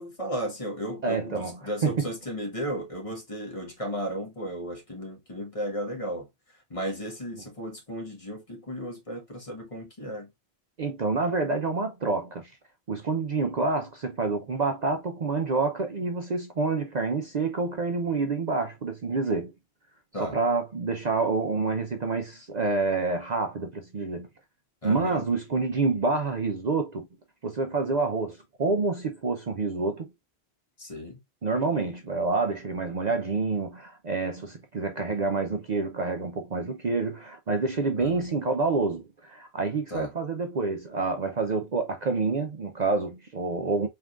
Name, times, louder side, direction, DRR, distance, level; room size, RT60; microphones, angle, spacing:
voice 1, 0.0-6.3 6.7-10.3 20.1-20.4 24.8-25.2 30.8-31.2 38.0-38.2 39.9-40.1, equal, 30° left, 1.4 m, -35 dB
voice 2, 1.0-2.1 10.8-12.5 12.9-19.5 20.2-24.3 24.8-27.1 27.4-30.1 31.4-43.9, right 3 dB, 45° right, 0.7 m, -28 dB
4.4 x 3.5 x 2.4 m
omnidirectional pair, 1.1 m